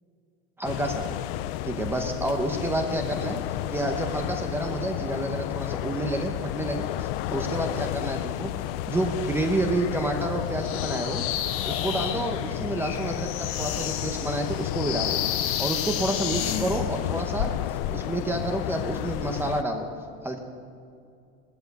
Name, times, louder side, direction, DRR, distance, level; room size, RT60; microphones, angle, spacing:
sound 1, 0.6-19.6, left 14 dB, 60° left, 0.6 m, -32 dB
voice 1, 0.6-1.2 1.6-3.4 3.7-8.5 8.9-11.2 11.7-15.2 15.6-19.9 20.2-20.4, right 1 dB, 5° right, 3 dB, 0.7 m, -29 dB
sound 2, 10.6-16.9, left 10 dB, 40° left, 1.0 m, -31 dB
16.5 x 13.0 x 6.7 m, 2.4 s
cardioid pair, 165°, 33 cm